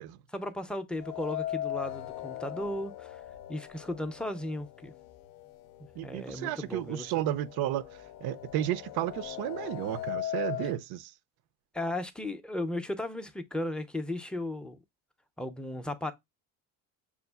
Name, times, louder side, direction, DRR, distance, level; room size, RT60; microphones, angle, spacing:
voice 1, 0.3-3.2 3.5-4.9 6.0-7.1 11.7-14.8 15.4-16.1, left 1 dB, ahead, 0.4 m, -35 dB
sound 1, 1.0-5.0 5.4-5.5 6.4-6.5 6.9-10.8, left 13 dB, 65° left, 0.5 m, -38 dB
voice 2, 6.0-7.9 8.2-11.1, right 13 dB, 65° right, 0.5 m, -32 dB
6.9 x 2.4 x 2.2 m
supercardioid pair, 90°, 41 cm